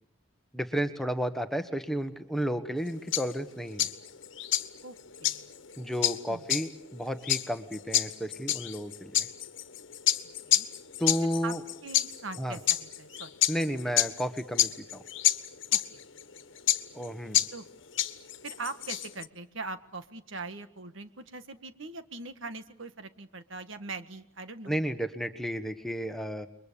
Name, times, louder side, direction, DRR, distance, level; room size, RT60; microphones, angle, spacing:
voice 1, 0.5-3.9 5.8-9.3 11.0-11.6 12.4-12.6 13.5-15.0 16.9-17.4 24.7-26.5, equal, ahead, 8 dB, 1.3 m, -32 dB
sound 1, 2.8-19.3, left 12 dB, 70° left, 1.4 m, -29 dB
voice 2, 4.8-5.4 6.3-6.4 10.4-10.7 11.4-11.5 11.8-13.9 15.7-16.0 17.5-17.6 18.4-24.8, right 3 dB, 75° right, 10 dB, 1.7 m, -42 dB
29.5 x 23.0 x 7.0 m, 0.65 s
head